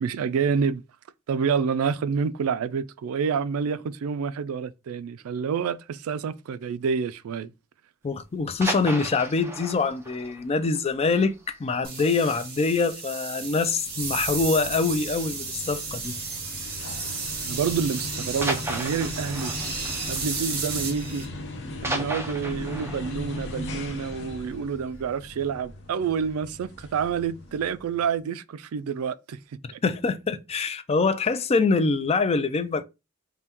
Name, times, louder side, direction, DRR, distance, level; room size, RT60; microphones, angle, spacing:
voice 1, 0.0-0.8 1.3-7.5 17.5-19.5 20.1-21.3 21.8-29.4 29.7-29.8, right 6 dB, 75° right, 0.3 m, -28 dB
voice 2, 8.0-16.2 29.8-32.8, left 4 dB, 30° left, 0.3 m, -24 dB
sound 1, 8.4-11.9 12.2-12.3 12.8-12.9 13.2-13.3 14.2-14.6 15.8-16.1 16.9-17.0 18.4-21.2 21.5-24.6 25.0-25.1, right 1 dB, 10° right, 0.6 m, -35 dB
sound 2, 11.8-21.2, right 4 dB, 45° right, 2.1 m, -33 dB
sound 3, 13.7-28.1, left 1 dB, 55° left, 0.8 m, -38 dB
5.4 x 2.2 x 2.9 m
head